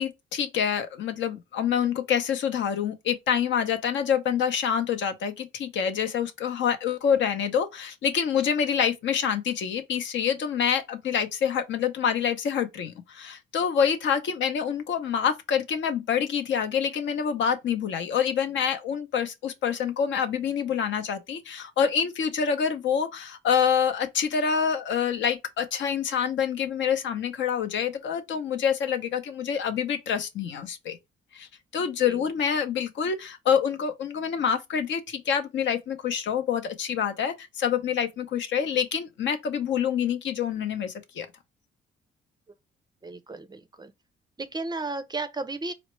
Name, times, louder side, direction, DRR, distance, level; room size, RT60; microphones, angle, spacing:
voice 1, 0.0-31.0 31.3-31.5 31.7-41.3, left 7 dB, 70° left, 0.7 m, -26 dB
voice 2, 43.0-43.9 44.4-45.7, right 3 dB, 20° right, 0.4 m, -34 dB
4.2 x 2.1 x 3.0 m
cardioid pair, 90°, 20 cm